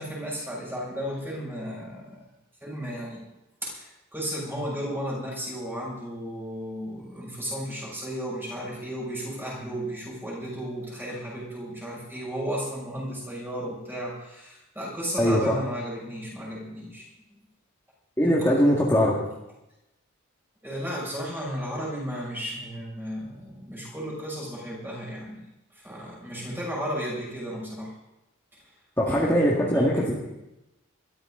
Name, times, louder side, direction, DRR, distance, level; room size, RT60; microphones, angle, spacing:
voice 1, 0.0-2.2 2.6-3.2 3.6-17.1 18.2-18.6 20.6-25.4 25.7-27.9 29.1-30.0, equal, 10° right, -4 dB, 6.5 m, -34 dB
voice 2, 15.2-15.6 18.2-19.2 29.0-30.3, equal, 10° left, -4 dB, 2.0 m, -21 dB
22.0 x 14.0 x 3.9 m, 0.91 s
head